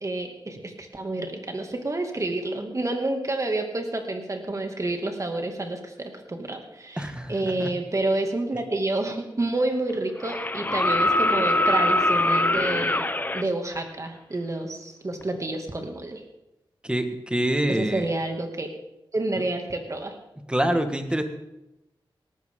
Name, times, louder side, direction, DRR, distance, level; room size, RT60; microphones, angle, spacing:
voice 1, 0.0-13.0 13.3-16.2 17.7-18.7 19.1-20.1, right 2 dB, 35° right, 4 dB, 2.3 m, -29 dB
voice 2, 7.0-7.7 16.8-18.0 20.5-21.2, right 1 dB, 10° right, 7 dB, 1.6 m, -26 dB
sound 1, 9.1-9.2 10.2-13.4 15.2-15.3, left 1 dB, 20° left, 0.7 m, -23 dB
18.0 x 14.0 x 3.8 m, 0.92 s
wide cardioid pair, 80°, 9 cm